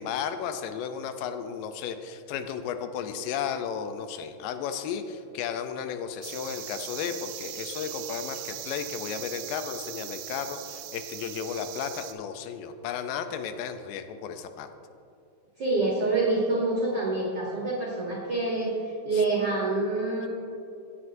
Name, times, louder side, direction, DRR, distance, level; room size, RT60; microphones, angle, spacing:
voice 1, 0.0-14.7 19.1-19.2, left 7 dB, 85° left, 8 dB, 2.3 m, -34 dB
sound 1, 6.2-12.1, right 12 dB, 80° right, 1.9 m, -39 dB
voice 2, 15.6-20.3, right 2 dB, 65° right, -4 dB, 1.1 m, -27 dB
16.5 x 7.9 x 2.6 m, 2.6 s
omnidirectional pair, 3.9 m